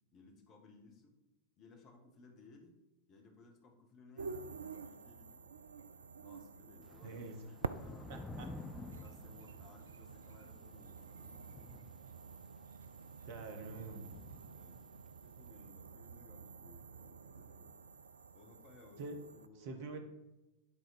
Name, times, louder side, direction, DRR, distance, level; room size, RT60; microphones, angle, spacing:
voice 1, 0.1-1.2 1.6-2.8 3.1-5.6 6.2-8.4 9.0-11.3 14.5-14.8 15.2-17.8 18.3-20.0, left 3 dB, 35° left, 2 dB, 1.7 m, -61 dB
sound 1, 4.2-19.5, right 5 dB, 70° right, 0.3 m, -49 dB
Thunder / Rain, 6.8-15.2, left 3 dB, 15° left, 0.4 m, -53 dB
voice 2, 7.0-7.4 8.1-8.5 13.3-14.2 19.0-19.2 19.5-20.0, right 3 dB, 50° right, 6 dB, 1.3 m, -46 dB
10.0 x 4.0 x 5.0 m, 0.99 s
figure-of-eight pair, 90°, 0 cm